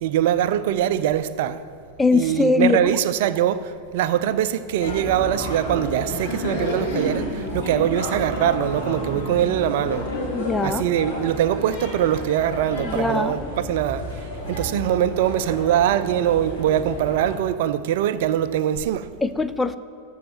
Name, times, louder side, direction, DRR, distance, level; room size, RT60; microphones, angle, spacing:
voice 1, 0.0-1.6 2.1-3.6 3.9-7.2 7.5-10.0 10.6-14.0 14.5-19.0, right 11 dB, 55° right, 0.5 m, -22 dB
voice 2, 2.0-3.0 10.3-10.9 12.8-13.4 19.2-19.8, left 3 dB, 10° left, 0.5 m, -21 dB
sound 1, 4.8-17.4, left 1 dB, 50° left, 3.8 m, -31 dB
14.5 x 5.6 x 9.4 m
figure-of-eight pair, 90°, 0 cm